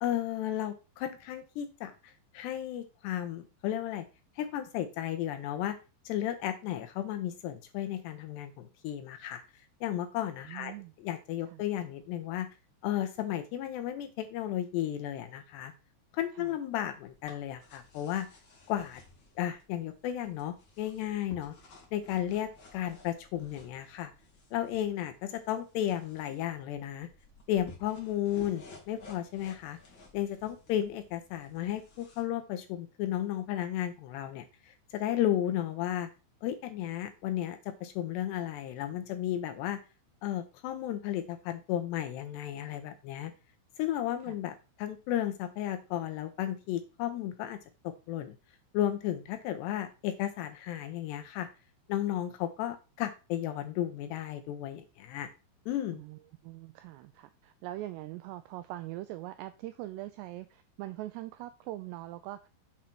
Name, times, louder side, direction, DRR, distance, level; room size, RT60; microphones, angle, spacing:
voice 1, 0.0-4.0 4.4-5.8 6.1-9.4 9.8-12.5 12.8-15.7 16.1-18.3 18.7-19.0 19.4-21.5 21.9-24.1 24.5-27.1 27.5-29.8 30.1-36.1 36.4-39.8 40.2-43.3 43.8-47.6 48.1-48.3 48.7-51.5 51.9-55.3 55.7-56.0, left 12 dB, 80° left, 2.7 m, -34 dB
voice 2, 10.5-10.9 11.5-11.6 16.4-16.6 44.2-44.4 55.9-62.5, right 16 dB, 85° right, 2.4 m, -42 dB
sound 1, 16.7-32.2, left 3 dB, 45° left, 1.5 m, -56 dB
7.6 x 4.1 x 5.9 m
omnidirectional pair, 5.4 m